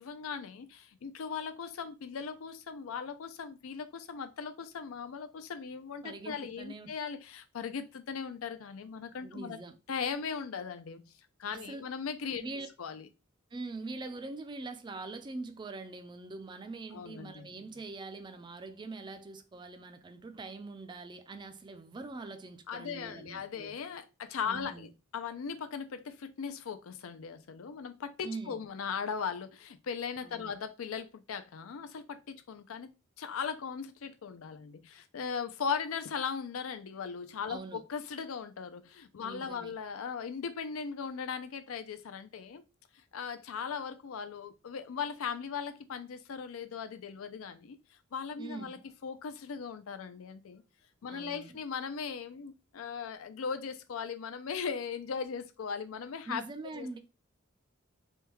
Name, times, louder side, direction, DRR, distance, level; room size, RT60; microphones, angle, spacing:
voice 1, 0.0-9.6 9.9-11.1 11.4-12.5 12.8-13.1 16.9-17.5 22.7-32.9 33.2-42.6 43.1-47.8 48.1-50.6 51.0-57.0, left 6 dB, 90° left, 0.4 m, -38 dB
voice 2, 6.0-6.9 9.2-9.8 11.5-11.8 12.4-12.7 13.5-23.7 24.4-24.9 28.2-28.6 30.2-30.5 37.5-37.8 39.2-39.7 48.4-48.8 51.1-51.6 56.3-57.0, right 3 dB, 20° right, 0.3 m, -43 dB
3.5 x 2.2 x 3.0 m
head